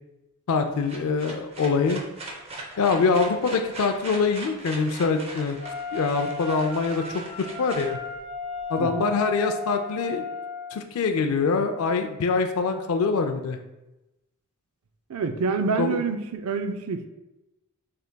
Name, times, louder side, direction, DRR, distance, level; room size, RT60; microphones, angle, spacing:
voice 1, 0.5-2.0 2.8-5.6 5.9-7.2 7.6-8.0 8.7-10.2 10.7-13.6 15.8-16.0, left 4 dB, 75° left, 6 dB, 0.4 m, -24 dB
sound 1, 0.6-8.6, right 2 dB, 25° right, 0.6 m, -40 dB
Wind instrument woodwind instrument, 5.6-10.8, left 4 dB, 45° right, 1.2 m, -35 dB
voice 2, 15.1-17.1, right 5 dB, 75° right, 8 dB, 0.4 m, -27 dB
6.4 x 3.4 x 2.2 m, 0.98 s
head